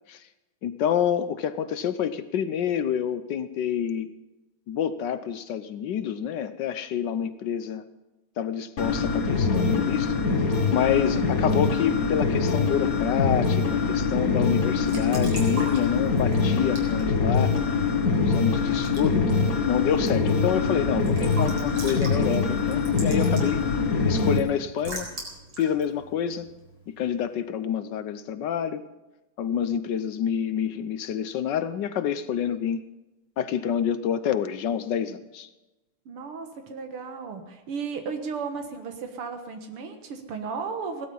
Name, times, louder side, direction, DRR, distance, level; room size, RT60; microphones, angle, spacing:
voice 1, 0.6-4.1 4.7-7.8 8.4-10.1 10.7-17.5 18.2-19.3 19.7-23.6 24.1-25.1 25.6-26.5 26.9-28.9 29.4-32.8 33.4-35.5, left 9 dB, 65° left, 12 dB, 1.2 m, -27 dB
sound 1, 8.8-24.4, left 4 dB, 45° left, 1.7 m, -24 dB
Raindrop / Drip / Trickle dribble, 14.6-27.1, right 1 dB, 70° right, 5.0 m, -43 dB
voice 2, 18.3-18.8 23.7-24.1 32.5-32.8 36.1-41.1, right 5 dB, 90° right, 6 dB, 2.4 m, -35 dB
17.0 x 12.5 x 5.5 m, 1.0 s
omnidirectional pair, 2.4 m